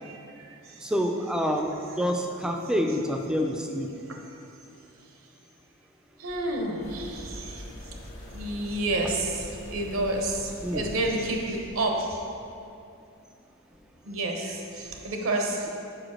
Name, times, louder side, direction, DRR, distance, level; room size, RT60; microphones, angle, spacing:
voice 1, 0.0-0.9 4.1-4.2 6.2-7.7 8.2-12.2 14.0-15.7, right 2 dB, 75° right, 2 dB, 0.8 m, -30 dB
voice 2, 0.8-1.7 2.0-3.9 10.6-10.9, equal, 5° right, 3 dB, 0.4 m, -27 dB
sound 1, 6.8-11.8, left 1 dB, 85° left, 1.2 m, -43 dB
5.0 x 4.5 x 6.1 m, 2.7 s
head